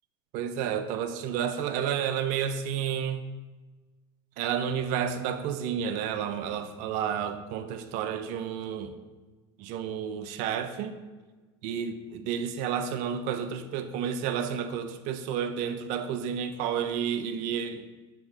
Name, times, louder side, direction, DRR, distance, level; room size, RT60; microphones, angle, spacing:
voice 1, 0.3-3.2 4.4-8.9 9.6-10.9 11.6-17.8, right 8 dB, 65° right, 9 dB, 0.8 m, -31 dB
8.7 x 7.1 x 3.9 m, 1.3 s
hypercardioid pair, 90°, 14 cm